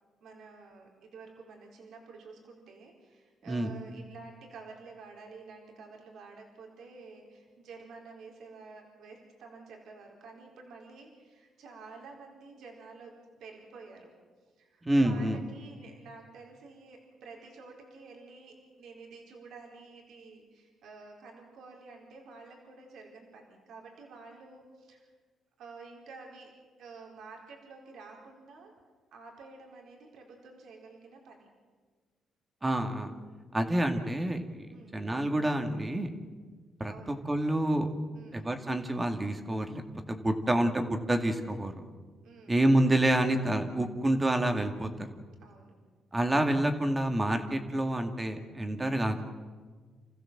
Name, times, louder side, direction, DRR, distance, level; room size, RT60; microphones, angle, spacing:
voice 1, 0.2-14.1 14.6-25.1 25.6-26.5 26.8-28.7 29.1-31.5 34.7-35.0 36.9-37.3 38.1-38.5 42.2-42.6 45.4-45.8, right 4 dB, 75° right, 0 dB, 4.4 m, -50 dB
voice 2, 14.8-15.4 32.6-33.1 33.5-36.1 36.8-37.9 38.3-39.8 40.1-41.8 42.5-44.9 46.1-49.2, right 1 dB, 20° right, 5 dB, 2.4 m, -28 dB
28.0 x 15.0 x 7.6 m, 1.5 s
cardioid pair, 90°, 0 cm